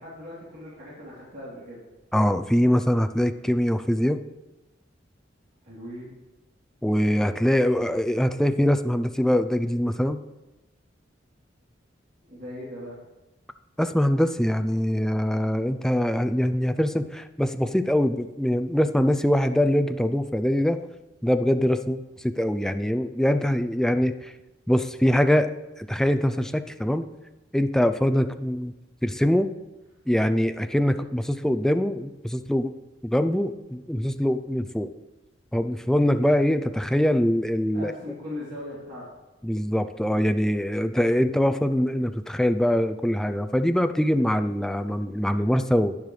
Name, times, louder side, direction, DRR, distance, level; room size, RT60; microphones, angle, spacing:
voice 1, 0.0-1.9 5.6-6.2 12.2-13.0 37.7-39.0, left 1 dB, 55° right, -9 dB, 3.2 m, -39 dB
voice 2, 2.1-4.2 6.8-10.2 13.8-20.8 21.2-24.3 24.7-25.5 25.8-27.1 27.5-28.7 29.0-29.5 30.1-32.7 33.0-34.9 35.5-37.9 39.4-46.0, equal, 5° left, 9 dB, 0.4 m, -23 dB
10.5 x 10.5 x 3.2 m, 1.0 s
head